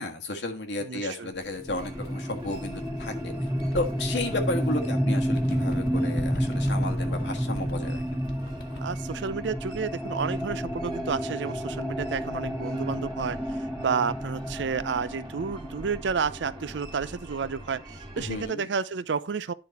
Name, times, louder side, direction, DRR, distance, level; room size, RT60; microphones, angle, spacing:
voice 1, 0.0-3.3 3.7-8.2 18.2-18.7, left 2 dB, 80° left, 1.5 m, -33 dB
voice 2, 0.8-1.3 8.8-19.5, right 5 dB, 85° right, 0.5 m, -31 dB
Bird, 1.3-4.9 5.3-9.1, left 1 dB, 60° left, 1.3 m, -44 dB
sound 1, 1.6-17.2, equal, 5° left, 0.5 m, -30 dB
sound 2, 1.7-18.4, right 1 dB, 25° right, 1.6 m, -44 dB
10.0 x 4.0 x 4.2 m
head